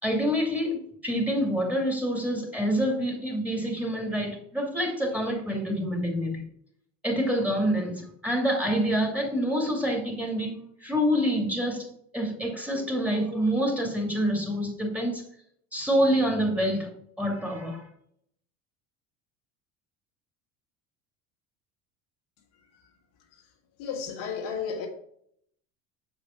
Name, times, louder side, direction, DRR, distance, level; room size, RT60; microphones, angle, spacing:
voice 1, 0.0-6.4 7.0-11.9 12.1-15.2 15.7-16.9 17.2-17.8, equal, 5° right, 2.5 m, -27 dB
voice 2, 23.8-24.9, left 6 dB, 70° left, 1.9 m, -32 dB
6.9 x 5.2 x 4.5 m
supercardioid pair, 85°, 40 cm